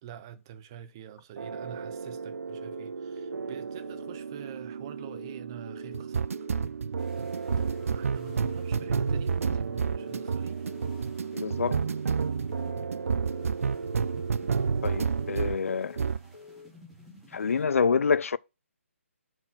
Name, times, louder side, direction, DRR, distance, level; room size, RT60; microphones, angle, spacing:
voice 1, 0.0-6.5 7.6-10.7, right 11 dB, 20° right, 0.5 m, -47 dB
sound 1, 1.4-15.6 16.0-16.3, right 5 dB, 80° right, 0.4 m, -31 dB
sound 2, 2.5-2.9 3.2-3.6 3.8-4.2 5.0-5.4 5.7-6.1 6.3-6.7 7.5-7.9 8.2-8.6 8.8-9.2 10.0-10.4 10.7-11.1 11.3-11.7 12.5-12.9 13.2-13.6 13.8-14.2 15.0-15.4 15.7-16.1 16.3-16.7, left 5 dB, 55° left, 1.4 m, -49 dB
sound 3, 7.0-17.6, left 1 dB, ahead, 1.1 m, -54 dB
voice 2, 11.3-11.8 14.8-16.0 17.3-18.4, left 5 dB, 75° left, 0.4 m, -27 dB
5.7 x 4.4 x 6.0 m
hypercardioid pair, 170°, 7 cm